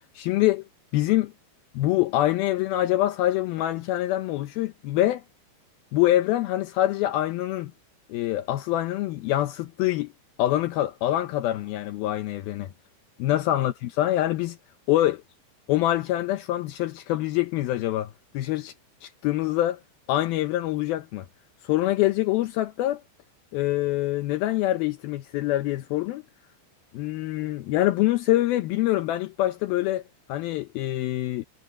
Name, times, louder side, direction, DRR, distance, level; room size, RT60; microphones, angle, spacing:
voice 1, 0.2-0.6 0.9-1.3 1.7-5.2 5.9-7.7 8.1-10.1 10.4-12.7 13.2-14.6 14.9-15.2 15.7-18.7 19.0-19.8 20.1-21.3 21.6-23.0 23.5-26.2 26.9-30.0 30.3-31.5, left 14 dB, 85° left, 2.1 m, -25 dB
omnidirectional pair, 5.5 m